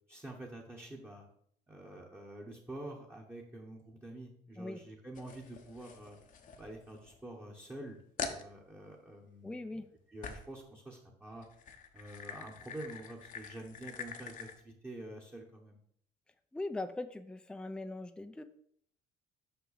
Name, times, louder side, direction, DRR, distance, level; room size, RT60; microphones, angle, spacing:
voice 1, 0.1-1.2 1.7-6.2 6.6-9.6 10.1-11.5 11.9-15.8, right 1 dB, 15° right, -2 dB, 1.1 m, -47 dB
sound 1, 5.1-7.2 7.6-7.7 8.2-8.5 10.2-10.6 11.3-14.6, left 6 dB, 50° left, 0.9 m, -45 dB
voice 2, 9.4-9.9 16.5-18.4, left 2 dB, 5° left, 9 dB, 0.4 m, -40 dB
5.9 x 5.6 x 4.1 m, 0.65 s
cardioid pair, 110°, 17 cm